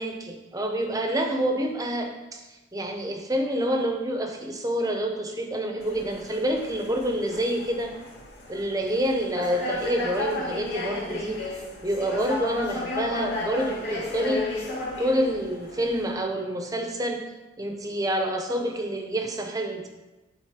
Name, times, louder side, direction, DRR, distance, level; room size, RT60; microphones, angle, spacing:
voice 1, 0.0-2.4 2.7-8.0 8.5-11.5 11.8-14.5 15.0-17.2 17.6-19.9, right 1 dB, 20° right, 3 dB, 0.9 m, -27 dB
sound 1, 5.8-16.1, left 2 dB, 70° left, 2.4 m, -34 dB
11.0 x 3.9 x 5.1 m, 1.1 s
head